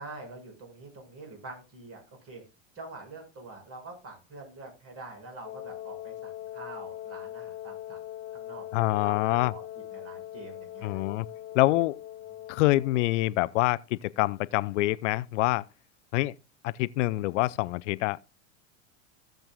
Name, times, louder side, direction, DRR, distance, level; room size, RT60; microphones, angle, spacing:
voice 1, 0.0-2.4 2.7-8.0 8.3-9.6 9.9-11.0, right 2 dB, 35° right, 6.1 m, -45 dB
Wind instrument woodwind instrument, 5.4-13.3, left 12 dB, 40° left, 1.1 m, -41 dB
voice 2, 8.7-9.5 10.8-11.3 11.5-12.0 12.5-15.6 16.1-16.3 16.6-18.4, left 18 dB, 65° left, 0.5 m, -26 dB
16.0 x 7.6 x 2.3 m
hypercardioid pair, 95°, 39 cm